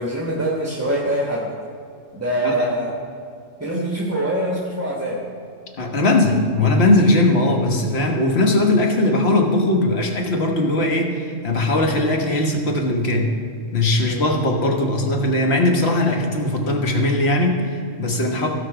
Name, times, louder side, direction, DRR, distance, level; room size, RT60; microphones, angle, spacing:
voice 1, 0.0-1.5 2.1-2.9 3.6-5.2 14.0-14.2 18.4-18.5, right 1 dB, 15° right, -3 dB, 1.1 m, -24 dB
voice 2, 5.8-13.3 13.7-18.5, left 2 dB, 55° left, 2 dB, 1.5 m, -19 dB
16.0 x 5.9 x 4.8 m, 2.4 s
omnidirectional pair, 1.3 m